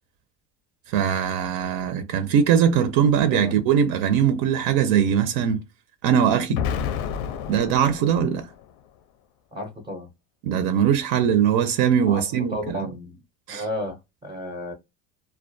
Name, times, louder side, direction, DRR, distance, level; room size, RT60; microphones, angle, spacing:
voice 1, 0.9-5.6 6.0-6.6 7.5-8.5 10.4-12.9 13.5-13.6, right 8 dB, 80° right, 0.5 m, -21 dB
Explosion, 6.5-8.6, left 8 dB, 85° left, 0.5 m, -30 dB
voice 2, 9.5-10.1 12.0-12.2 12.5-13.2 13.5-14.7, left 1 dB, 15° right, 0.4 m, -32 dB
2.3 x 2.2 x 2.5 m
cardioid pair, 160°, 35 cm